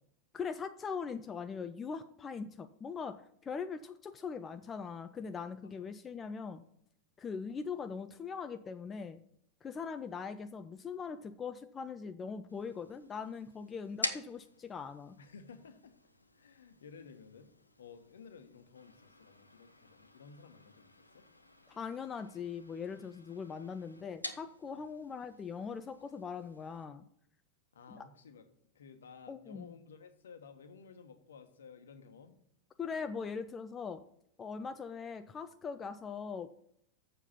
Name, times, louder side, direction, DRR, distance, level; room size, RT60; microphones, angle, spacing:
voice 1, 0.3-6.6 7.2-9.2 9.6-15.2 21.7-27.0 27.9-28.0 29.3-29.7 32.8-34.0 34.4-36.5, left 5 dB, 20° left, 9 dB, 0.5 m, -41 dB
sound 1, 12.5-26.8, left 2 dB, 80° left, 0.7 m, -48 dB
voice 2, 15.2-15.9 16.3-21.3 27.7-28.4 28.7-32.4, left 5 dB, 65° left, 8 dB, 1.1 m, -54 dB
7.2 x 6.7 x 5.6 m, 0.70 s
figure-of-eight pair, 90°, 0 cm